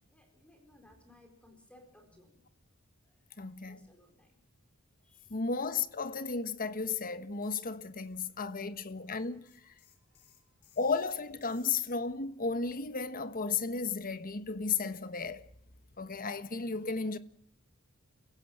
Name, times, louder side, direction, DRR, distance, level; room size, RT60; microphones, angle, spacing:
voice 1, 0.1-2.5 3.0-4.4 5.0-5.4 8.0-8.8 9.0-9.2 9.5-10.7, left 1 dB, 5° left, 4.4 m, -63 dB
voice 2, 3.4-3.9 5.3-9.7 10.8-15.5 16.0-17.2, left 4 dB, 40° left, 1.3 m, -34 dB
sound 1, 7.4-7.7 8.0-12.0, left 10 dB, 80° left, 5.1 m, -64 dB
29.5 x 16.5 x 7.5 m
head